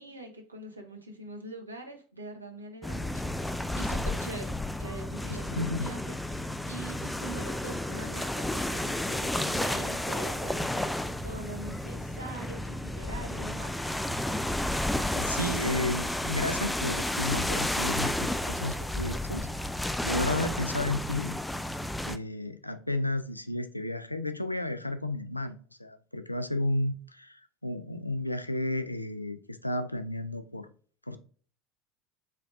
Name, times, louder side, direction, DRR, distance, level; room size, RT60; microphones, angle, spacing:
voice 1, 0.0-13.8, right 2 dB, 85° right, 0.8 m, -43 dB
sound 1, 2.8-22.2, left 1 dB, 5° left, 0.3 m, -32 dB
voice 2, 5.6-5.9 15.1-19.5 20.0-21.3 22.0-30.7 31.1-31.2, left 2 dB, 85° left, 0.3 m, -32 dB
4.4 x 3.5 x 2.3 m
figure-of-eight pair, 70°, 0 cm